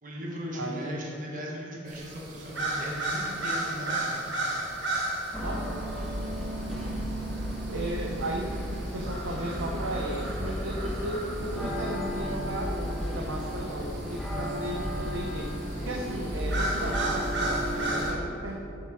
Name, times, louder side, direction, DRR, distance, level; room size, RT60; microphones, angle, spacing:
voice 1, 0.0-4.2, equal, 40° right, -3 dB, 1.3 m, -37 dB
voice 2, 0.5-1.0 5.4-5.8 7.7-15.5 15.8-18.6, right 1 dB, 90° right, -1 dB, 0.7 m, -35 dB
sound 1, 1.9-18.1, right 2 dB, 60° right, 1.4 m, -36 dB
sound 2, 5.3-18.2, equal, ahead, 0.7 m, -33 dB
6.9 x 6.0 x 4.6 m, 2.7 s
head